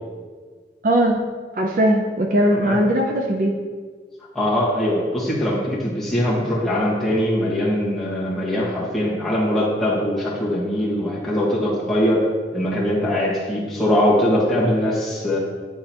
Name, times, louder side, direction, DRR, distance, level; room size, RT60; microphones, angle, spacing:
voice 1, 0.8-1.3 1.5-3.5, right 1 dB, 45° right, 1 dB, 0.5 m, -19 dB
voice 2, 4.3-15.4, left 1 dB, ahead, -8 dB, 1.4 m, -21 dB
9.9 x 3.8 x 2.9 m, 1.5 s
head